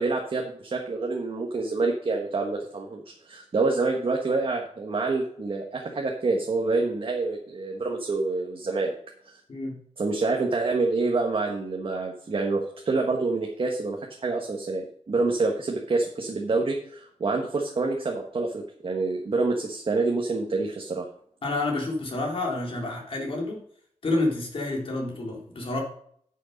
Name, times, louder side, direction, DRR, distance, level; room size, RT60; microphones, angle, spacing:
voice 1, 0.0-3.0 3.3-8.9 10.0-21.1, right 3 dB, 45° right, 0 dB, 1.4 m, -27 dB
voice 2, 9.5-9.8 21.4-23.6 24.0-25.8, left 2 dB, 50° left, -1 dB, 3.5 m, -29 dB
10.5 x 6.6 x 5.3 m, 0.63 s
wide cardioid pair, 135°, 12 cm